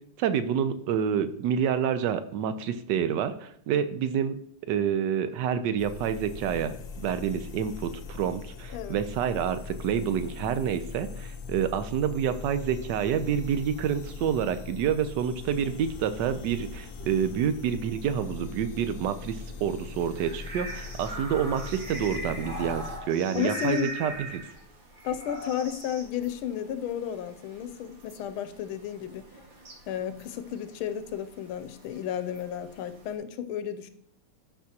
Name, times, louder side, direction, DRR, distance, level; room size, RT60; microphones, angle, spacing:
voice 1, 0.2-4.4 4.6-24.4, right 8 dB, 75° right, 11 dB, 1.0 m, -28 dB
sound 1, 5.8-23.0, left 5 dB, 60° left, 0.8 m, -41 dB
sound 2, 20.0-33.2, right 2 dB, 90° right, 2.6 m, -52 dB
sound 3, 20.2-24.5 25.0-25.7, right 1 dB, 35° right, 2.1 m, -38 dB
voice 2, 23.3-23.9 25.0-29.3 29.9-33.9, left 9 dB, 80° left, 11 dB, 1.4 m, -33 dB
10.0 x 6.0 x 2.8 m, 0.72 s
omnidirectional pair, 2.4 m